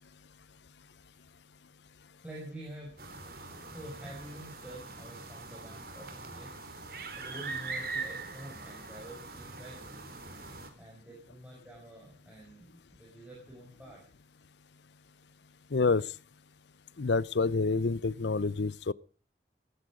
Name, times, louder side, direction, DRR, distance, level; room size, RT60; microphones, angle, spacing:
voice 1, 2.2-6.5 7.2-10.1 10.8-14.0, right 1 dB, 5° right, 5.6 m, -48 dB
sound 1, 3.0-10.7, right 3 dB, 55° right, 3.8 m, -42 dB
voice 2, 15.7-16.1 17.0-18.9, left 4 dB, 80° left, 0.7 m, -28 dB
15.5 x 15.0 x 4.9 m
head